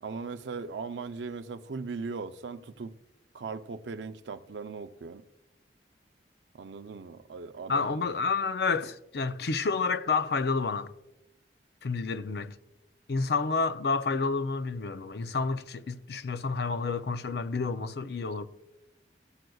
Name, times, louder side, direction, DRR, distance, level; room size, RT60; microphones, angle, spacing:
voice 1, 0.0-2.9 3.3-5.2 6.5-8.1, right 4 dB, 85° right, 0.5 m, -39 dB
voice 2, 7.7-10.9 11.8-12.5 13.1-18.5, left 4 dB, 65° left, 0.5 m, -29 dB
14.5 x 7.7 x 2.3 m
head